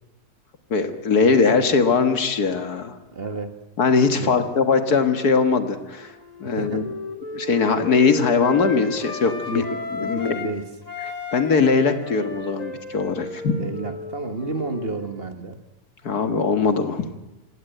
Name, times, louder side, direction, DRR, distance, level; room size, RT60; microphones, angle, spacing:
voice 1, 0.7-2.9 3.8-6.1 6.4-6.8 7.3-9.6 10.0-10.4 11.3-13.6 16.0-17.1, left 5 dB, 70° left, 8 dB, 2.1 m, -20 dB
voice 2, 3.1-3.6 4.1-4.4 6.4-6.9 9.5-9.7 10.0-10.7 13.6-15.6, right 3 dB, 35° right, 8 dB, 1.7 m, -31 dB
Wind instrument woodwind instrument, 6.0-10.5 10.8-15.3, left 2 dB, 25° left, 3.1 m, -34 dB
26.0 x 16.5 x 9.2 m, 1.1 s
omnidirectional pair, 1.7 m